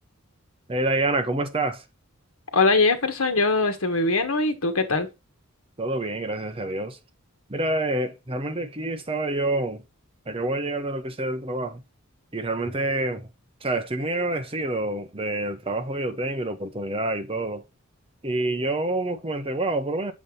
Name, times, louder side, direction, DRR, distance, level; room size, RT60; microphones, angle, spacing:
voice 1, 0.7-1.8 5.8-7.0 7.5-9.8 10.3-11.8 12.3-13.3 13.6-17.6 18.2-20.1, right 2 dB, 25° right, 0.8 m, -27 dB
voice 2, 2.5-5.1, left 3 dB, 80° left, 1.4 m, -22 dB
7.3 x 5.6 x 3.2 m
head